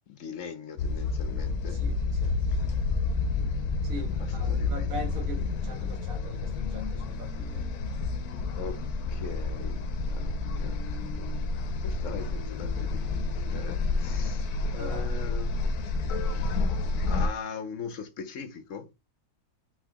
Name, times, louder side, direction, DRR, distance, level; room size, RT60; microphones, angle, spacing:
voice 1, 0.1-1.8 3.8-5.2 5.5-5.6 8.6-8.8 9.1-10.8 11.1-11.4 11.8-15.6 16.5-16.6 17.1-18.9, left 6 dB, 65° left, 1.0 m, -41 dB
sound 1, 0.8-17.3, left 3 dB, 80° left, 1.2 m, -29 dB
voice 2, 1.7-2.7 3.8-7.8 14.8-15.1, equal, 65° right, 1.7 m, -42 dB
4.3 x 4.2 x 2.9 m
omnidirectional pair, 1.6 m